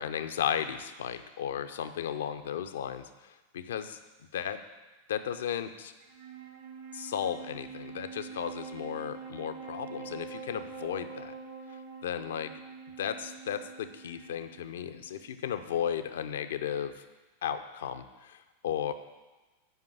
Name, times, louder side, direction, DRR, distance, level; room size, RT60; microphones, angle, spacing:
voice 1, 0.0-4.0 4.3-4.6 5.1-5.9 6.9-11.3 12.0-12.5 13.0-16.9 17.4-18.9, left 9 dB, 60° left, 10 dB, 0.6 m, -35 dB
Wind instrument woodwind instrument, 6.0-15.5, right 5 dB, 60° right, 1.6 m, -45 dB
8.0 x 5.2 x 7.6 m, 1.2 s
figure-of-eight pair, 90°, 0 cm